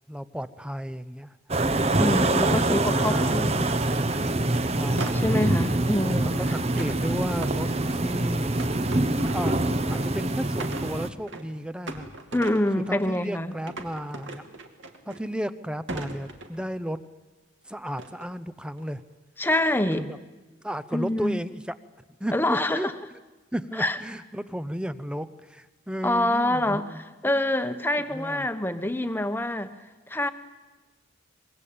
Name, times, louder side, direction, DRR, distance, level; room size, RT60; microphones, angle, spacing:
voice 1, 0.1-1.4 1.9-3.4 4.7-5.4 6.3-8.6 9.2-9.6 9.9-12.1 12.7-14.4 15.1-17.0 17.7-19.0 20.0-20.2 20.6-21.7 22.2-22.9 23.5-27.3 28.1-28.5, equal, 5° right, 0.8 m, -34 dB
sound 1, 1.5-11.1, right 2 dB, 30° right, 0.9 m, -25 dB
voice 2, 2.0-3.7 5.1-6.4 12.3-13.5 19.4-20.1 20.9-21.4 22.3-22.9 23.8-24.0 26.0-26.8 27.2-29.7 30.1-30.3, left 1 dB, 10° left, 1.1 m, -26 dB
sound 2, 4.1-4.3 5.0-6.1 6.8-8.0 8.6-10.2 10.4-11.6 11.9-13.3 13.7-15.5 15.9-16.9 18.0-18.3 18.8-19.1, right 2 dB, 70° right, 2.5 m, -40 dB
25.5 x 22.0 x 8.6 m
head